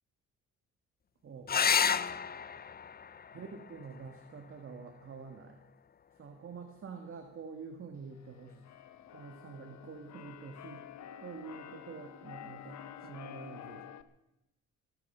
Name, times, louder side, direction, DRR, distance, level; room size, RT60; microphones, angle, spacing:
voice 1, 1.2-2.3 3.3-5.6 6.2-8.6 9.1-10.9 11.2-13.9, right 5 dB, 45° right, 4 dB, 1.8 m, -47 dB
sound 1, 1.5-6.5 8.4-9.0 12.5-12.6 12.9-13.0, left 7 dB, 30° left, 0.6 m, -34 dB
Keyboard (musical), 8.1-14.0, left 9 dB, 65° left, 1.0 m, -49 dB
24.0 x 9.6 x 5.6 m, 0.89 s
cardioid pair, 90°, 30 cm